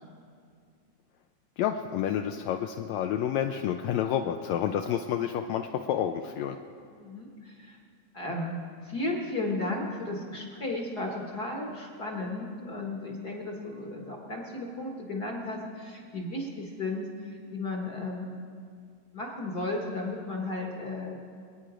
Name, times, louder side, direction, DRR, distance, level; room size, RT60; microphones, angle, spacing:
voice 1, 1.6-6.6, left 9 dB, 80° left, 5 dB, 1.7 m, -29 dB
voice 2, 7.0-7.8 8.1-18.3 19.1-21.3, left 2 dB, 45° left, -1 dB, 1.4 m, -34 dB
26.0 x 9.3 x 5.0 m, 2.2 s
omnidirectional pair, 3.6 m